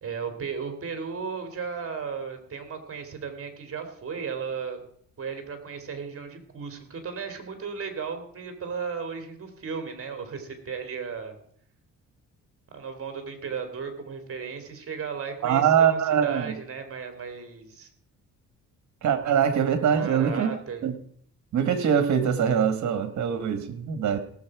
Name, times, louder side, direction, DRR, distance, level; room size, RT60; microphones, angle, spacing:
voice 1, 0.0-4.8 5.2-11.4 12.7-17.9 20.0-20.8, right 6 dB, 50° right, 7 dB, 3.0 m, -35 dB
voice 2, 15.4-16.6 19.0-20.5 20.8-21.0 21.5-24.2, right 8 dB, 65° right, 10 dB, 1.8 m, -23 dB
18.0 x 7.8 x 4.8 m, 0.63 s
cardioid pair, 90°, 30 cm